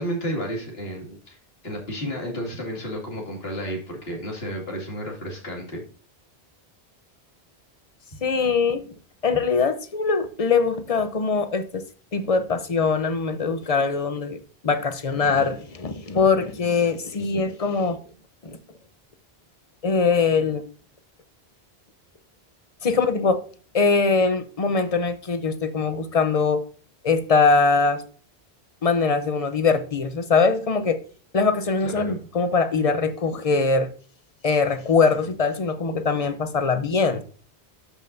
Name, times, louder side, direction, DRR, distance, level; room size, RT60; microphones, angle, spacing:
voice 1, 0.0-1.4 1.6-5.8 31.8-32.2, equal, 70° left, -1 dB, 2.7 m, -32 dB
voice 2, 8.2-8.8 9.2-11.8 12.1-14.4 14.6-18.0 18.4-18.6 19.8-20.6 22.8-23.4 23.7-26.6 27.0-28.0 28.8-31.0 31.3-33.9 34.4-37.2, left 4 dB, 40° left, 10 dB, 0.8 m, -22 dB
12.5 x 5.5 x 2.6 m, 0.41 s
omnidirectional pair, 1.1 m